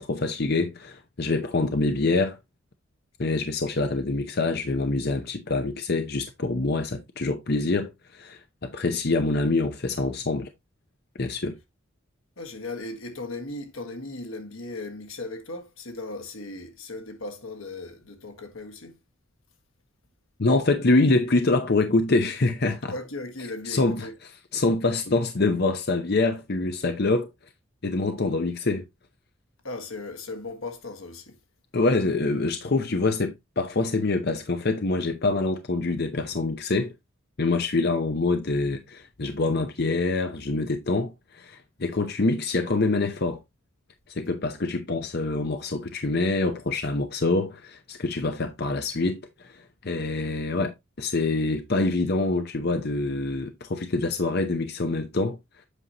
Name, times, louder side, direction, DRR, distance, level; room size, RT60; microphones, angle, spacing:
voice 1, 0.0-2.4 3.2-10.5 11.2-11.6 20.4-22.9 23.7-24.1 24.5-27.3 27.8-28.8 31.7-36.9 37.4-43.4 44.1-50.7 51.0-55.4, left 3 dB, 50° left, 0.8 m, -25 dB
voice 2, 12.4-18.9 22.9-24.1 29.6-31.3, left 2 dB, 85° left, 1.7 m, -37 dB
8.2 x 5.6 x 2.9 m
head